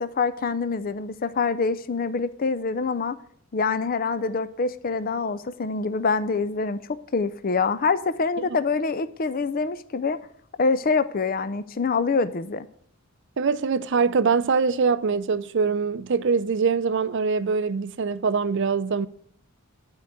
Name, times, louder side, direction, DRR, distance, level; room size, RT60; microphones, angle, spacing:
voice 1, 0.0-3.2 3.5-10.2 10.6-12.7, left 4 dB, 40° left, 0.5 m, -25 dB
voice 2, 13.4-19.1, right 5 dB, 55° right, 0.5 m, -23 dB
12.0 x 4.7 x 8.4 m
head